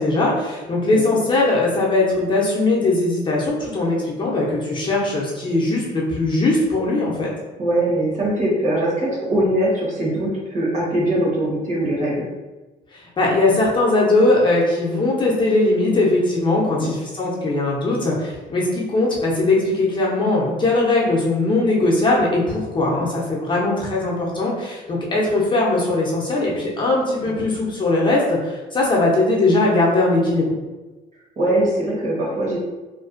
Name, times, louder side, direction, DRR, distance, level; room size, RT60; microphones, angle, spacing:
voice 1, 0.0-7.3 12.9-30.5, left 2 dB, 30° left, -4 dB, 0.6 m, -20 dB
voice 2, 7.6-12.3 16.6-16.9 22.9-23.0 27.2-27.5 31.4-32.6, right 1 dB, 45° right, -5 dB, 1.1 m, -22 dB
2.5 x 2.2 x 2.4 m, 1.2 s
cardioid pair, 110°, 17 cm